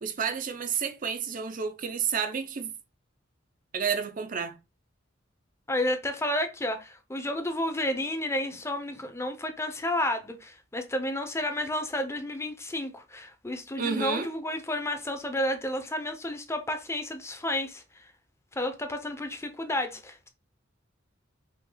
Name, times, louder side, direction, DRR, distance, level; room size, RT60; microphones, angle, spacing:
voice 1, 0.0-2.7 3.7-4.5 13.8-14.3, right 6 dB, 45° right, 0.5 m, -30 dB
voice 2, 5.7-18.1 18.5-20.3, left 1 dB, 15° left, 0.7 m, -31 dB
5.2 x 2.3 x 3.9 m
head